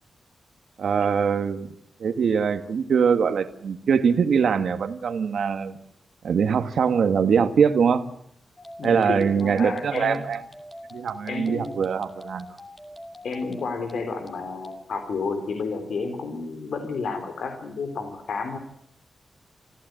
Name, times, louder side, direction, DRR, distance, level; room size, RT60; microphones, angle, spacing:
voice 1, 0.8-1.7 2.0-5.8 6.2-8.0 8.8-10.4 10.9-12.6, right 6 dB, 85° right, 9 dB, 1.7 m, -22 dB
sound 1, 8.6-14.8, left 1 dB, 15° left, 2.7 m, -43 dB
voice 2, 8.8-10.2 11.3-11.9 13.2-18.6, left 4 dB, 85° left, 6 dB, 3.6 m, -31 dB
27.5 x 16.0 x 9.1 m, 0.75 s
wide cardioid pair, 165°, 0 cm